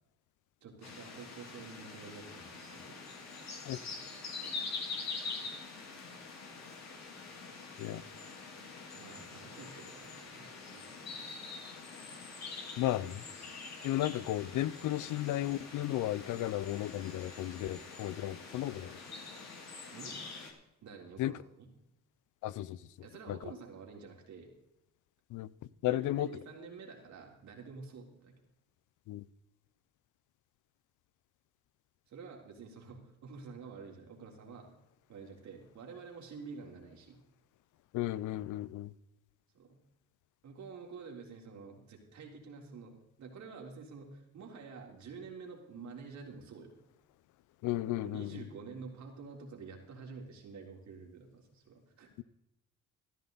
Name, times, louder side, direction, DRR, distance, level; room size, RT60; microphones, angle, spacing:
voice 1, 0.6-3.0 8.9-11.2 19.9-20.2 20.8-21.7 23.0-24.5 25.9-28.3 32.1-34.7 35.1-37.2 39.5-39.8 40.4-46.7 48.0-52.1, right 5 dB, 65° right, 3.6 m, -49 dB
sound 1, 0.8-20.5, left 4 dB, 60° left, 3.6 m, -45 dB
voice 2, 12.8-13.2 13.8-18.9 21.2-21.3 22.4-22.8 23.3-23.4 25.3-25.5 25.8-26.3 29.1-29.2 37.9-38.9 47.6-48.4 52.2-52.3, left 14 dB, 85° left, 0.6 m, -34 dB
15.0 x 13.0 x 4.0 m
cardioid pair, 90°, 30 cm